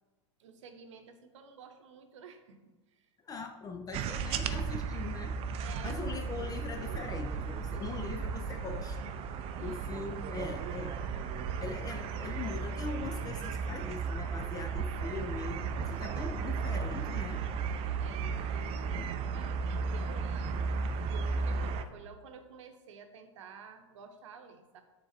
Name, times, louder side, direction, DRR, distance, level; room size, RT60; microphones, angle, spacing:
voice 1, 0.4-3.1 5.6-6.0 9.6-9.9 18.0-20.7 21.1-24.8, right 6 dB, 70° right, 6 dB, 0.9 m, -52 dB
voice 2, 3.2-5.4 5.8-9.1 9.6-11.0 11.6-17.4 18.9-19.1, left 4 dB, 25° left, 5 dB, 0.5 m, -41 dB
sound 1, 3.9-21.8, right 5 dB, 35° right, 0.5 m, -35 dB
7.2 x 3.4 x 4.2 m, 1.2 s
hypercardioid pair, 105°, 16 cm